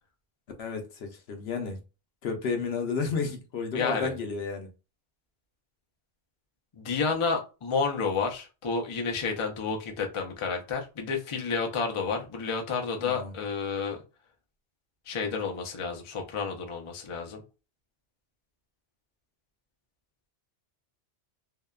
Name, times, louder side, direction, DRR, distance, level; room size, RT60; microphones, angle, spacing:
voice 1, 0.6-1.8 2.2-4.7 13.0-13.3, left 5 dB, 70° left, 0.8 m, -32 dB
voice 2, 3.7-4.1 6.7-14.0 15.1-17.4, left 5 dB, 45° left, 0.4 m, -30 dB
2.7 x 2.1 x 2.2 m
omnidirectional pair, 1.2 m